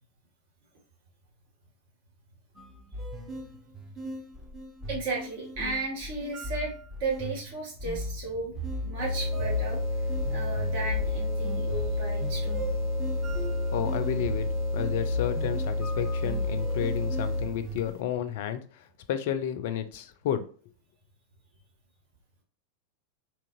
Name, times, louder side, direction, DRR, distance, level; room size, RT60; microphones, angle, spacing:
sound 1, 2.5-17.9, equal, 20° right, 0.8 m, -39 dB
voice 1, 4.9-6.7 7.0-9.8 10.3-12.6, right 3 dB, 50° right, -2 dB, 1.0 m, -34 dB
sound 2, 8.9-17.6, left 2 dB, 35° right, 1.5 m, -29 dB
voice 2, 13.7-14.5 14.7-20.5, left 10 dB, 50° left, 10 dB, 0.4 m, -32 dB
3.9 x 2.8 x 2.5 m, 0.42 s
figure-of-eight pair, 90°, 0 cm